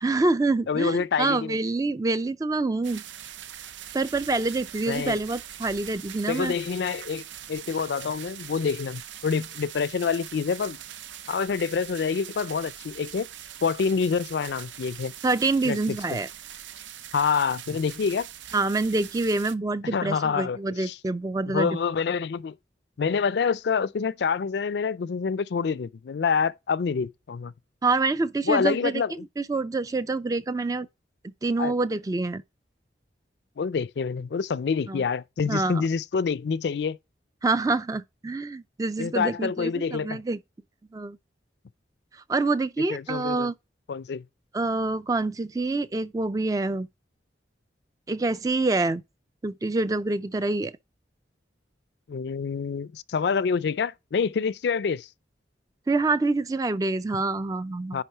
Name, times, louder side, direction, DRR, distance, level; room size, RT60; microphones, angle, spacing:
voice 1, 0.0-3.0 3.9-6.5 15.2-16.3 18.5-21.8 27.8-29.0 29.4-30.9 31.2-32.4 34.9-35.0 35.5-35.8 37.4-40.4 40.9-41.2 42.1-43.5 44.5-46.9 48.1-49.0 49.4-50.8 55.9-58.0, right 3 dB, 20° right, 0.3 m, -26 dB
voice 2, 0.7-1.6 4.9-5.2 6.3-7.2 7.5-10.8 11.3-13.3 13.6-15.1 15.6-16.2 17.1-18.3 19.9-21.0 21.5-22.5 23.0-27.5 28.5-29.3 31.6-31.7 33.6-37.0 39.0-40.2 42.9-43.5 43.9-44.2 52.1-55.1 57.9-58.0, left 5 dB, 70° left, 0.4 m, -27 dB
sound 1, 2.8-19.5, right 10 dB, 90° right, 0.6 m, -42 dB
10.0 x 3.6 x 4.4 m
head